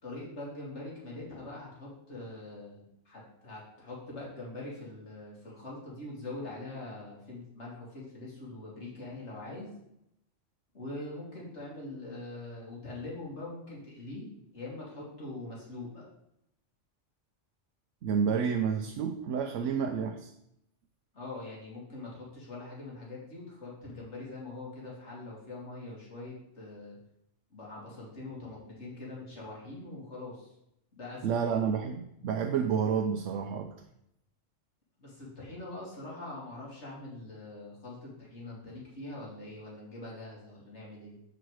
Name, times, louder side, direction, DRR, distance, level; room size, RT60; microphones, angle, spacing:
voice 1, 0.0-9.7 10.7-14.3 14.5-16.0 21.1-27.0 27.5-30.5 30.9-31.6 35.0-41.1, left 2 dB, 65° left, -4 dB, 2.5 m, -43 dB
voice 2, 18.0-20.3 31.2-33.7, right 7 dB, 90° right, 5 dB, 1.0 m, -30 dB
7.6 x 4.9 x 4.7 m, 0.81 s
omnidirectional pair, 1.2 m